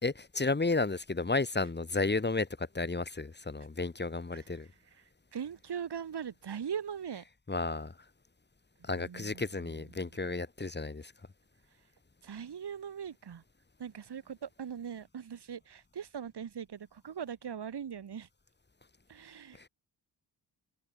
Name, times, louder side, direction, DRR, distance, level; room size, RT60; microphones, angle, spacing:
voice 1, 0.0-4.7 7.5-7.9 8.9-11.1 19.6-19.7, left 3 dB, 25° left, 2.7 m, -32 dB
voice 2, 4.3-7.2 8.8-10.2 12.2-13.4 13.8-18.3 19.1-19.7, right 8 dB, 70° right, 5.2 m, -41 dB
cardioid pair, 90°, 41 cm